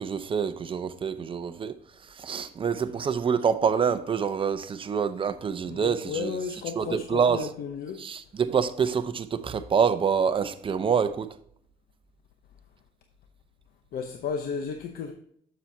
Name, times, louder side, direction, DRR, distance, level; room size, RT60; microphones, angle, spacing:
voice 1, 0.0-1.8 2.2-6.3 6.8-7.5 8.0-11.3, right 6 dB, 30° right, 0.7 m, -26 dB
voice 2, 5.7-8.0 13.9-15.1, left 6 dB, 60° left, 0.8 m, -33 dB
7.4 x 7.2 x 2.7 m
cardioid pair, 110°, 17 cm